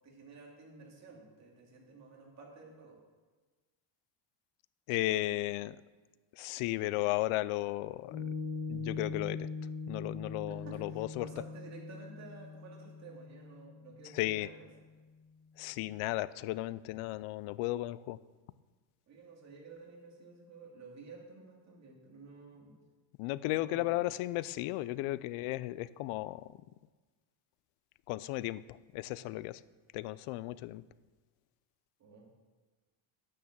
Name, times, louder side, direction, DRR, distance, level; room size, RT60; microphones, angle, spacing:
voice 1, 0.0-3.0 10.5-14.7 19.1-22.8 23.5-24.1 32.0-32.3, right 4 dB, 35° right, -1 dB, 2.5 m, -52 dB
voice 2, 4.9-5.8 6.4-8.2 8.7-9.5 9.9-11.3 14.1-14.5 15.6-18.2 23.2-26.5 28.1-29.6 29.9-30.8, left 17 dB, 90° left, 18 dB, 0.6 m, -35 dB
Piano, 8.1-14.8, left 4 dB, 55° left, 2.8 m, -42 dB
9.9 x 9.5 x 7.3 m, 1.3 s
cardioid pair, 175°, 49 cm